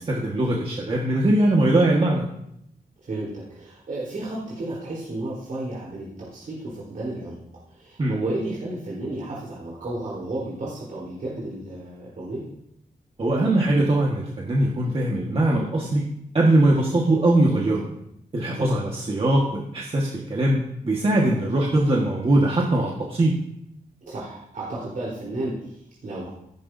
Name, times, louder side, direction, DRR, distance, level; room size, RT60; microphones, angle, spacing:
voice 1, 0.0-2.3 8.0-8.2 13.2-16.1 16.3-17.8 18.3-23.4, right 1 dB, 35° right, -3 dB, 1.6 m, -21 dB
voice 2, 3.0-7.4 7.7-12.5 18.5-18.7 24.1-26.3, right 2 dB, 65° right, -7 dB, 3.9 m, -32 dB
15.5 x 11.5 x 2.7 m, 0.78 s
wide cardioid pair, 140°, 16 cm